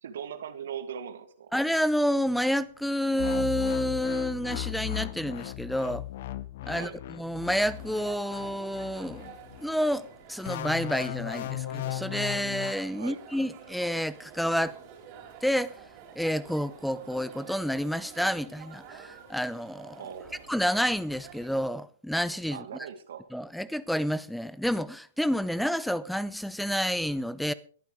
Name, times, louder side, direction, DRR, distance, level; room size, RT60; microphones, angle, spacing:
voice 1, 0.0-1.5 6.7-7.0 13.0-13.2 20.0-20.4 22.5-23.3, right 8 dB, 60° right, 1.9 m, -40 dB
voice 2, 1.5-6.1 6.7-9.3 9.6-14.8 15.4-15.7 16.2-20.0 20.5-22.6 23.3-27.5, equal, ahead, 0.7 m, -29 dB
sound 1, 3.2-9.7 10.5-12.7, left 14 dB, 50° left, 0.9 m, -36 dB
sound 2, 7.4-21.5, right 7 dB, 35° right, 5.1 m, -49 dB
22.5 x 9.3 x 3.6 m
figure-of-eight pair, 110°, 0 cm